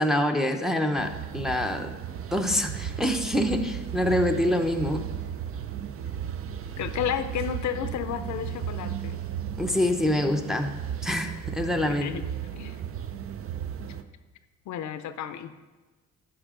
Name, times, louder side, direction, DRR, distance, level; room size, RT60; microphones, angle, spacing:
voice 1, 0.0-1.9 2.3-5.0 9.6-10.7 11.0-12.1, left 1 dB, ahead, 4 dB, 0.7 m, -25 dB
sound 1, 1.0-14.0, right 9 dB, 45° right, 0.5 m, -35 dB
voice 2, 6.8-9.2 11.9-12.8 14.7-15.5, left 9 dB, 70° left, 11 dB, 0.6 m, -32 dB
11.5 x 5.0 x 3.7 m, 1.2 s
cardioid pair, 90°, 30 cm